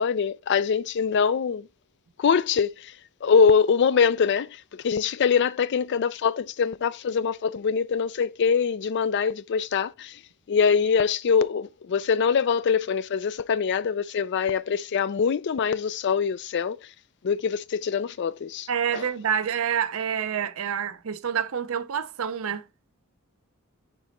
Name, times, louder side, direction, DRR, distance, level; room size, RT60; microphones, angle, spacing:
voice 1, 0.0-1.7 2.2-2.9 3.2-10.2 10.5-16.8 17.2-18.7 18.9-19.0, left 6 dB, 50° left, 0.4 m, -23 dB
voice 2, 18.7-22.6, right 8 dB, 65° right, 0.5 m, -27 dB
4.5 x 4.1 x 5.0 m
head